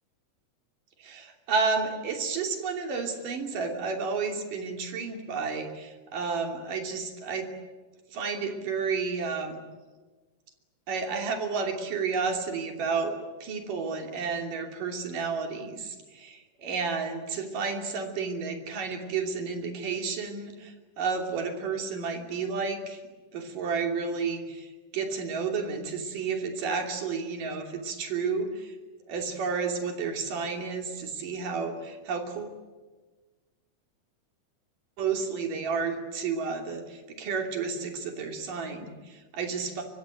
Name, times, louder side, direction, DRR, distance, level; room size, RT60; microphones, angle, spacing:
voice 1, 1.0-7.5 8.1-9.6 10.9-13.1 13.4-23.0 23.3-28.8 29.1-32.6 35.0-39.8, right 5 dB, 75° right, 4 dB, 4.6 m, -31 dB
24.0 x 23.5 x 9.1 m, 1.3 s
omnidirectional pair, 3.8 m